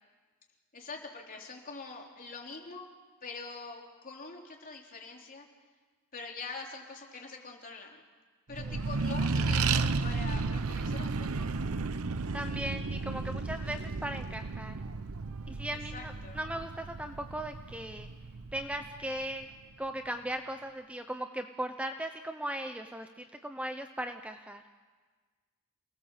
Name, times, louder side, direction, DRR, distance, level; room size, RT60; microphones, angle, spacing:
voice 1, 0.7-2.9 3.2-5.5 6.1-8.0 8.5-11.7 15.7-16.4, left 4 dB, 40° left, 0 dB, 3.6 m, -44 dB
Accelerating revving vroom, 8.5-19.4, right 3 dB, 80° right, 0.8 m, -33 dB
voice 2, 12.3-14.8 15.5-18.1 18.5-19.5 19.8-24.6, right 1 dB, 5° right, 6 dB, 0.8 m, -38 dB
28.5 x 19.5 x 7.4 m, 1.4 s
head